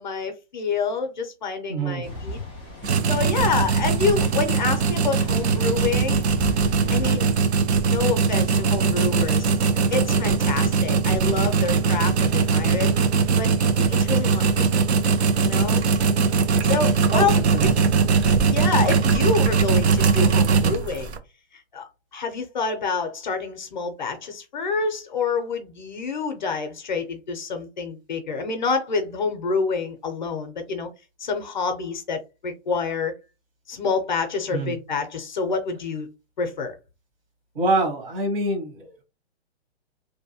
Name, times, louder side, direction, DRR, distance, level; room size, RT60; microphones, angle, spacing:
voice 1, 0.0-2.4 3.1-6.2 6.9-7.3 7.8-9.5 9.9-12.9 13.4-14.9 15.4-15.8 16.6-17.4 18.5-21.2 21.7-30.9 31.2-33.1 33.7-36.1 36.4-36.8, left 5 dB, 45° left, 0.5 m, -27 dB
voice 2, 1.7-2.0 6.8-7.1 17.1-17.3 17.5-18.2 34.5-34.7 37.5-39.0, right 2 dB, 55° right, 1.3 m, -26 dB
sound 1, 2.0-7.1, left 1 dB, 10° right, 0.4 m, -36 dB
sound 2, 2.8-21.2, right 5 dB, 75° right, 0.6 m, -20 dB
2.6 x 2.2 x 2.6 m
hypercardioid pair, 175°, 33 cm